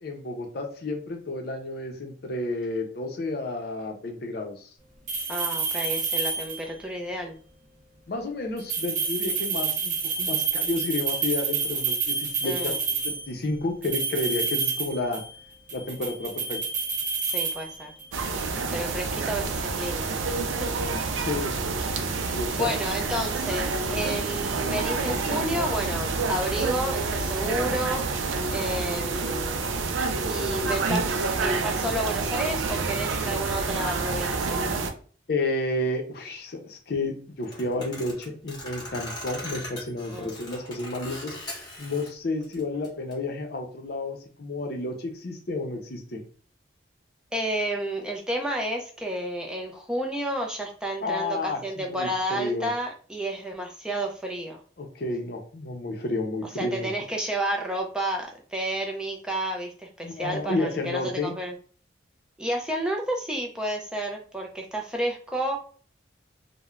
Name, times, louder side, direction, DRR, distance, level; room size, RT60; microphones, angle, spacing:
voice 1, 0.0-4.7 8.1-15.2 15.7-16.6 21.2-22.7 35.3-41.4 41.8-46.2 51.0-52.7 54.8-56.9 60.0-61.3, left 2 dB, 55° left, 4 dB, 0.5 m, -31 dB
sound 1, 5.1-6.8 8.6-13.3 13.8-15.4 15.7-18.2, right 5 dB, 40° right, 0.7 m, -28 dB
voice 2, 5.3-7.4 12.4-12.8 17.2-17.9 18.7-20.4 22.5-28.0 28.5-29.8 30.3-34.7 40.1-40.3 47.3-54.6 56.4-61.5 62.4-65.6, right 1 dB, 5° right, 0 dB, 0.3 m, -31 dB
sound 2, 18.1-34.9, right 3 dB, 85° right, 0.4 m, -28 dB
sound 3, 37.4-42.1 42.4-43.1, left 1 dB, 20° left, 0.9 m, -40 dB
3.0 x 2.0 x 2.4 m, 0.42 s
head